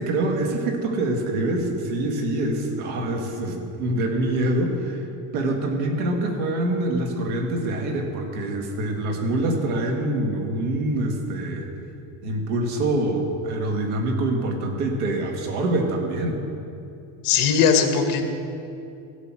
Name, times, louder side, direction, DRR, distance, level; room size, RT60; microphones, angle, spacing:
voice 1, 0.0-5.0 5.3-11.7 12.2-16.4, right 1 dB, 85° right, 2 dB, 2.1 m, -25 dB
voice 2, 17.2-18.2, left 6 dB, 50° left, 5 dB, 1.6 m, -19 dB
15.5 x 8.4 x 6.1 m, 2.7 s
cardioid pair, 150°, 43 cm